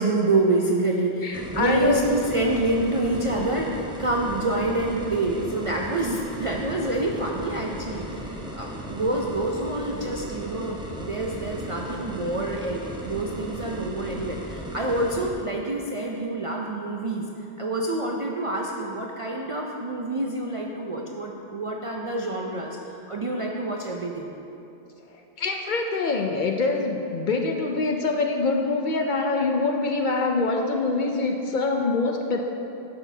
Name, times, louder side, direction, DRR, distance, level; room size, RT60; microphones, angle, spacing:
voice 1, 0.0-17.3 17.6-24.3, right 2 dB, 50° right, -1 dB, 0.4 m, -27 dB
voice 2, 1.2-2.0 25.4-32.4, left 3 dB, 55° left, 2 dB, 0.6 m, -24 dB
sound 1, 1.3-15.3, equal, 5° right, 0.6 m, -36 dB
11.5 x 6.1 x 2.7 m, 2.8 s
omnidirectional pair, 1.1 m